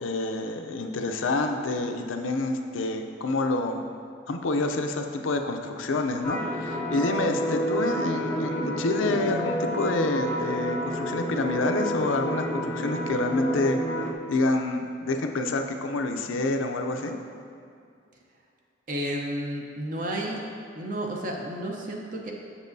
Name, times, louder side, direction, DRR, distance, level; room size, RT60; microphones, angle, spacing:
voice 1, 0.0-3.9 4.3-13.8 14.3-17.2, left 2 dB, 85° left, 5 dB, 0.5 m, -27 dB
sound 1, 6.2-14.1, equal, 10° left, 0.4 m, -30 dB
voice 2, 18.9-20.4 20.8-22.3, right 1 dB, 45° right, 0 dB, 0.6 m, -31 dB
7.2 x 6.7 x 2.7 m, 2.4 s
head